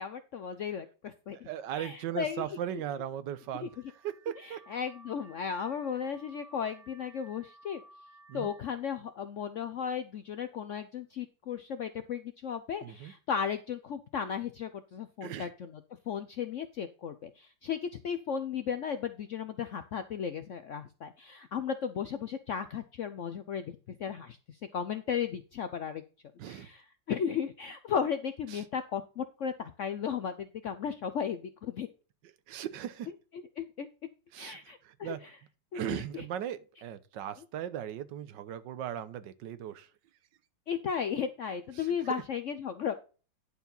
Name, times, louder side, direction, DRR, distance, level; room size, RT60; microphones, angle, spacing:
voice 1, 0.0-1.5 1.7-2.4 3.5-3.7 4.4-7.8 8.3-15.7 16.1-26.0 26.5-31.9 33.6-33.9 34.4-35.1 35.7-36.2 40.7-43.0, left 7 dB, 75° left, 0.7 m, -35 dB
voice 2, 1.3-3.8 4.0-4.6 8.3-8.5 12.8-13.1 15.2-15.5 26.4-26.7 28.5-28.6 32.2-33.1 34.3-35.2 35.7-39.9 41.8-42.2, right 10 dB, 70° right, 1.4 m, -38 dB
Car / Alarm, 3.3-8.8, right 2 dB, 40° right, 1.7 m, -57 dB
10.5 x 4.7 x 5.4 m
omnidirectional pair, 2.0 m